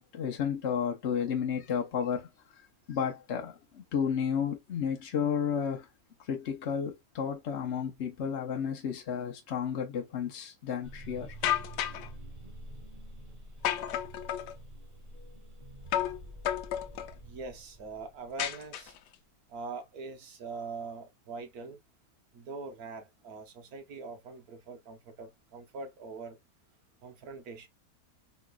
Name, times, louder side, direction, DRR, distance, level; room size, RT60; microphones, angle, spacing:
voice 1, 0.0-2.3 2.9-5.9 6.3-11.3, left 7 dB, 50° left, 0.9 m, -32 dB
sound 1, 10.8-18.9, right 1 dB, 30° right, 0.8 m, -48 dB
sound 2, 11.4-12.1 13.6-14.5 15.9-16.2 16.4-17.1 18.4-19.1, left 11 dB, 85° left, 1.2 m, -31 dB
voice 2, 17.2-18.9 19.5-21.8 22.3-26.4 27.0-27.7, right 4 dB, 65° right, 1.4 m, -43 dB
4.2 x 2.9 x 2.3 m
omnidirectional pair, 1.8 m